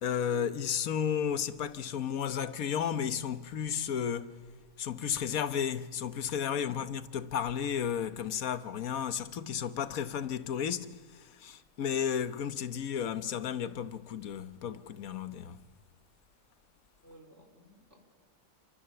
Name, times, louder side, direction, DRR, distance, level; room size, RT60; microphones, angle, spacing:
voice 1, 0.0-4.3 4.8-10.9 11.4-15.6, left 8 dB, 90° left, 1.4 m, -33 dB
voice 2, 6.6-6.9 17.0-18.0, left 2 dB, 55° right, 4.6 m, -55 dB
27.5 x 25.5 x 6.9 m
omnidirectional pair, 1.4 m